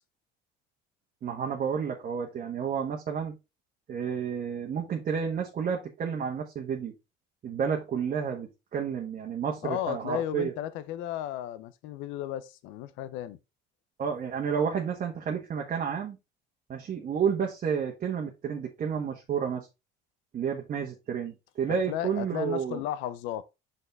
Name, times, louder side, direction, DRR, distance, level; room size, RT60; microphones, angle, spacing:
voice 1, 1.2-3.3 3.9-6.9 7.4-10.5 14.0-16.2 16.7-19.7 20.3-22.8, right 7 dB, 45° right, 1.4 m, -31 dB
voice 2, 9.6-13.4 21.7-23.4, left 12 dB, 80° left, 0.8 m, -34 dB
5.7 x 5.6 x 3.4 m
supercardioid pair, 100°, 20 cm